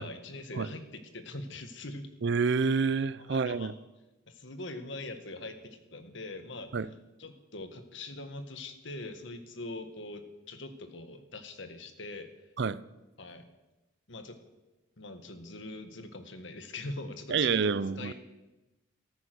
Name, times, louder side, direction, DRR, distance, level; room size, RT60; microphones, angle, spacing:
voice 1, 0.0-2.1 3.2-3.7 4.3-6.7 7.2-10.2 10.5-12.3 13.2-13.5 14.1-14.4 15.0-18.1, left 2 dB, 60° left, 1.7 m, -42 dB
voice 2, 2.2-3.7 6.7-6.9 12.6-12.8 17.3-18.1, right 5 dB, 55° right, 0.5 m, -28 dB
14.5 x 13.5 x 6.3 m
head